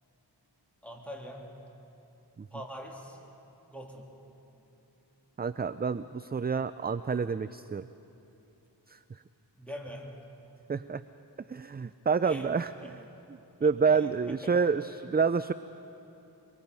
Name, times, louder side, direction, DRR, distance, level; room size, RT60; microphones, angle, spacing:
voice 1, 0.8-1.5 2.5-3.2 3.7-4.2 9.6-10.2 12.2-12.5 12.8-12.9 13.6-14.6 15.4-15.5, equal, 5° left, -1 dB, 3.2 m, -44 dB
voice 2, 5.4-7.9 8.9-9.0 10.7-11.0 11.5-12.7 13.6-15.5, right 5 dB, 25° right, 13 dB, 0.4 m, -28 dB
23.5 x 23.0 x 5.4 m, 2.9 s
wide cardioid pair, 50°, 43 cm